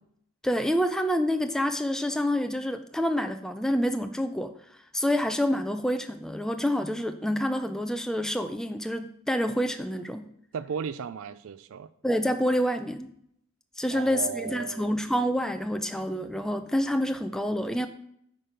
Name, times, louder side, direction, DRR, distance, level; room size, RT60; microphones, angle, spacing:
voice 1, 0.4-4.5 4.9-10.3 12.0-13.1 13.8-17.9, equal, ahead, 7 dB, 0.4 m, -27 dB
voice 2, 10.5-11.9 13.9-14.9, right 6 dB, 70° right, 15 dB, 0.4 m, -35 dB
8.8 x 4.6 x 5.0 m, 0.70 s
head